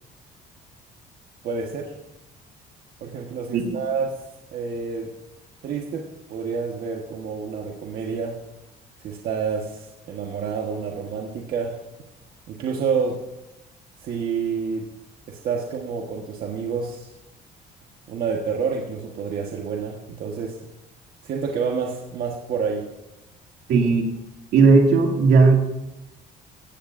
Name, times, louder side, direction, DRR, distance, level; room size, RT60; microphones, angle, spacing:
voice 1, 1.4-1.9 3.0-4.1 4.5-5.1 5.6-6.0 6.3-8.4 9.0-11.8 12.5-13.2 14.0-14.8 15.3-17.1 18.1-20.6 21.2-22.8, right 5 dB, 65° right, 0 dB, 1.4 m, -28 dB
voice 2, 23.7-24.1 24.5-25.6, right 4 dB, 80° right, 1 dB, 2.5 m, -16 dB
17.5 x 16.0 x 2.6 m, 0.94 s
cardioid pair, 110°, 17 cm